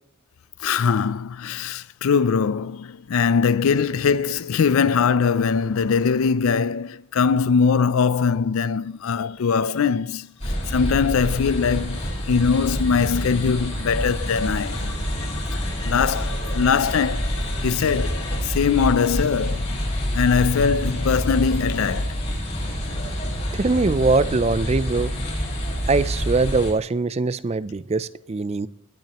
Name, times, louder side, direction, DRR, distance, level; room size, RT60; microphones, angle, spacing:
voice 1, 0.6-12.0 12.3-14.9 15.5-17.3 17.6-19.7 20.1-22.2, left 6 dB, 80° left, 0.4 m, -21 dB
sound 1, 9.1-18.4, left 3 dB, 60° left, 1.8 m, -42 dB
Sloane Square - Fountain in middle of square, 10.4-26.7, equal, 35° left, 5.4 m, -27 dB
voice 2, 23.5-25.1 25.9-28.7, right 3 dB, 30° right, 0.4 m, -22 dB
19.0 x 12.0 x 3.0 m
head